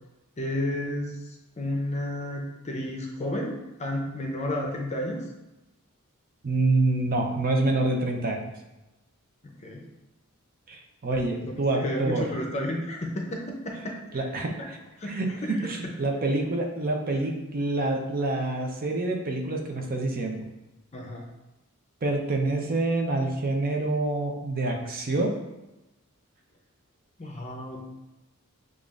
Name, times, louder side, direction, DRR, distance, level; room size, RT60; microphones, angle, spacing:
voice 1, 0.4-1.2 1.6-5.2 9.4-9.8 11.4-11.5 11.8-14.3 15.0-15.9 20.9-21.2 27.2-27.8, left 1 dB, 30° left, 0 dB, 0.6 m, -32 dB
voice 2, 6.4-8.5 10.7-12.2 14.1-14.8 15.1-15.3 15.6-20.5 22.0-25.3, right 2 dB, 40° right, 2 dB, 0.6 m, -27 dB
6.9 x 2.5 x 2.4 m, 1.0 s
head